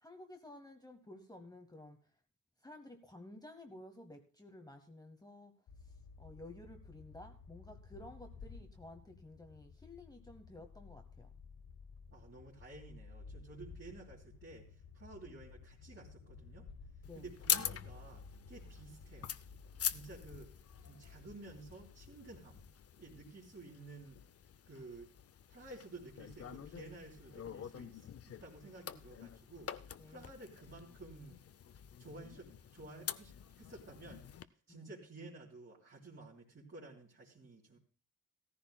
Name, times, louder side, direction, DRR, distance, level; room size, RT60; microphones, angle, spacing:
voice 1, 0.0-2.0 2.6-5.5 6.2-11.3 17.0-17.3 30.0-30.3 34.7-34.9, left 1 dB, 10° left, 4 dB, 0.9 m, -53 dB
sound 1, 5.7-22.7, left 4 dB, 90° left, 1.2 m, -55 dB
voice 2, 12.1-16.7 17.1-19.3 19.9-20.5 20.8-22.7 23.0-24.2 24.7-25.1 25.5-31.4 32.0-34.2 34.7-37.8, right 2 dB, 40° right, -6 dB, 3.1 m, -53 dB
sound 2, 17.0-34.4, left 9 dB, 45° left, 0.5 m, -44 dB
17.0 x 14.5 x 2.3 m, 0.40 s
wide cardioid pair, 160°, 34 cm